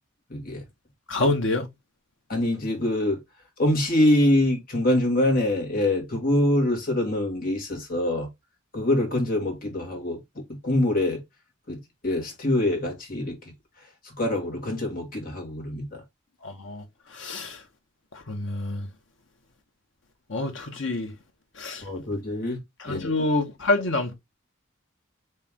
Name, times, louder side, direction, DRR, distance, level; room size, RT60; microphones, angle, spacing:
voice 1, 0.3-0.6 2.3-3.2 3.6-8.3 8.7-10.2 10.6-11.2 11.7-13.4 14.2-16.0 21.8-22.6 22.9-23.1, left 1 dB, 45° left, 2.0 m, -24 dB
voice 2, 1.1-1.7 16.4-16.8 17.1-17.6 18.3-18.9 20.3-21.1 21.6-21.8 22.8-24.1, left 2 dB, 65° left, 1.4 m, -27 dB
4.4 x 3.3 x 3.6 m
head